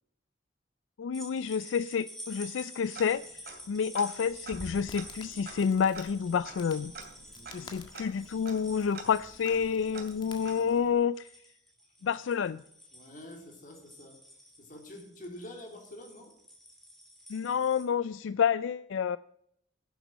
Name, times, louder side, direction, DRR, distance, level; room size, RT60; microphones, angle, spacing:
voice 1, 1.0-6.9 7.5-11.3 12.0-12.6 17.3-19.2, left 7 dB, 80° left, 0.4 m, -29 dB
sound 1, 1.1-17.8, equal, ahead, 2.9 m, -50 dB
Tick-tock, 2.9-3.7 3.9-4.0 4.4-10.9, right 4 dB, 55° right, 2.8 m, -48 dB
Crackle, 4.3-10.9, left 2 dB, 25° left, 1.7 m, -51 dB
voice 2, 7.3-7.8 12.9-14.2 14.6-16.3, left 1 dB, 45° left, 3.4 m, -47 dB
11.5 x 8.1 x 7.4 m
head